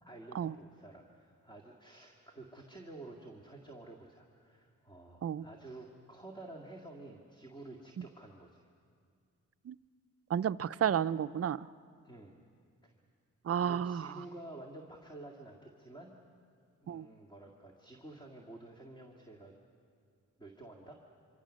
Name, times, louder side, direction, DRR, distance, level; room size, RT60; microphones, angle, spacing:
voice 1, 0.0-8.7 12.0-12.4 12.8-12.9 13.6-16.1 16.8-19.5 20.4-21.0, right 2 dB, 15° left, 0 dB, 2.0 m, -51 dB
voice 2, 10.3-11.7 13.4-14.2 16.9-17.1, right 9 dB, 50° right, 12 dB, 0.5 m, -32 dB
25.5 x 25.5 x 6.4 m, 2.2 s
wide cardioid pair, 100°, 31 cm